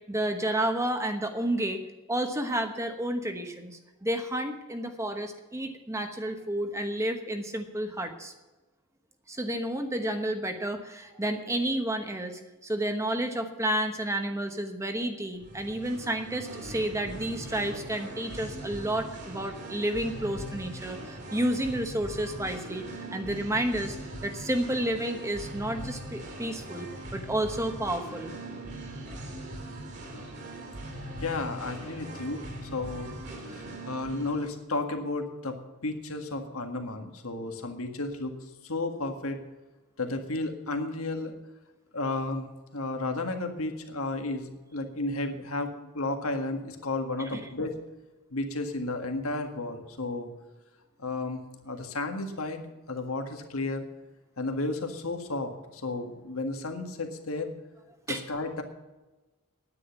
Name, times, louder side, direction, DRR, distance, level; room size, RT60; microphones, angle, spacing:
voice 1, 0.1-1.8 2.1-8.3 9.3-24.0 24.2-28.3 47.3-47.4 58.1-58.2, right 1 dB, 15° right, 6 dB, 1.1 m, -31 dB
Singing, 15.3-34.5, right 1 dB, 50° right, 2.9 m, -41 dB
voice 2, 31.2-33.1 33.5-38.3 38.6-39.4 40.0-41.3 41.9-42.5 42.7-47.8 48.3-50.3 51.0-52.6 52.9-53.9 54.4-57.5 58.1-58.6, left 2 dB, 70° left, 5 dB, 1.8 m, -33 dB
10.0 x 9.7 x 7.1 m, 1.2 s
head